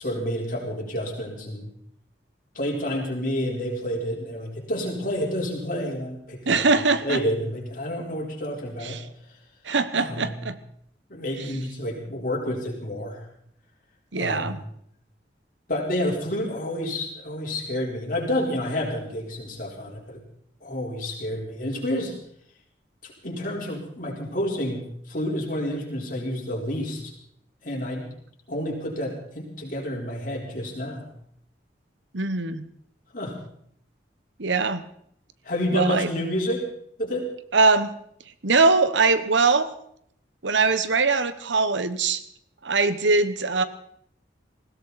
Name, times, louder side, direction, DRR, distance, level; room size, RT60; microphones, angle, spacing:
voice 1, 0.0-1.7 2.5-6.6 7.0-9.0 9.9-10.3 11.1-13.2 14.2-14.6 15.7-20.2 20.6-22.1 23.0-27.1 27.6-28.0 28.5-31.1 33.1-33.4 35.4-36.6 37.0-37.3, left 1 dB, 45° left, -1 dB, 4.5 m, -29 dB
voice 2, 6.5-7.2 8.8-9.0 9.6-10.6 14.1-14.6 32.1-32.7 34.4-34.8 35.7-36.1 37.5-37.9 38.4-39.7 40.4-42.2 42.6-43.6, right 4 dB, 85° right, 13 dB, 1.2 m, -22 dB
20.0 x 16.5 x 4.2 m, 0.68 s
head